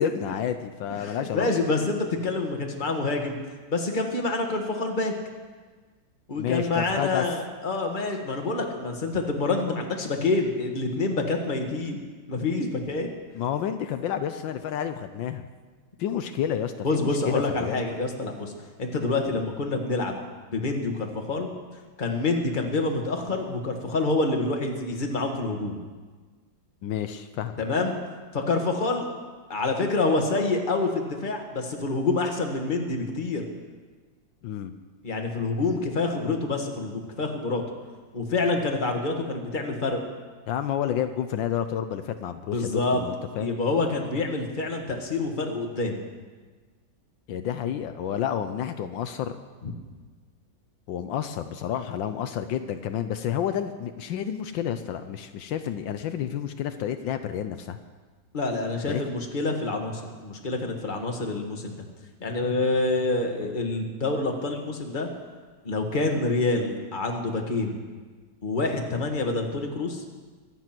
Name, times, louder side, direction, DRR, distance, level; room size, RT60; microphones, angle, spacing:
voice 1, 0.0-1.5 6.4-7.3 13.3-15.4 16.0-17.8 26.8-27.6 34.4-34.7 40.5-43.5 47.3-49.4 50.9-57.8 58.9-59.0, left 9 dB, 80° left, 9 dB, 1.4 m, -30 dB
voice 2, 1.0-3.4 3.7-5.1 6.3-12.0 12.3-13.1 16.8-18.5 18.8-20.2 20.5-21.5 22.0-25.8 27.6-28.0 28.3-29.1 29.5-33.4 35.0-37.6 38.1-40.0 42.5-43.0 43.4-46.0 49.6-49.7 58.3-61.8 62.2-65.1 65.6-67.8 68.4-70.1, left 3 dB, 25° left, 2 dB, 1.7 m, -27 dB
23.5 x 9.3 x 6.0 m, 1.4 s
omnidirectional pair, 2.1 m